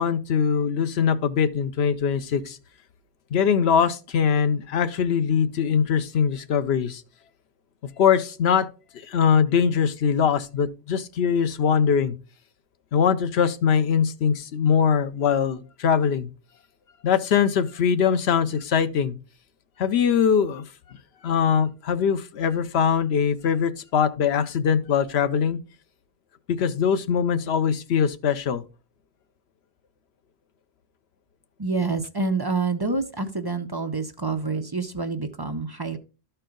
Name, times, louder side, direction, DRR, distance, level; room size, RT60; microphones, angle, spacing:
voice 1, 0.0-2.6 3.3-7.0 8.0-8.7 9.0-12.1 12.9-16.3 17.0-19.1 19.8-21.0 21.2-25.6 26.5-28.6, left 7 dB, 75° left, 1.0 m, -22 dB
voice 2, 31.6-36.0, right 4 dB, 30° right, 0.5 m, -27 dB
12.5 x 4.5 x 3.8 m
omnidirectional pair, 1.1 m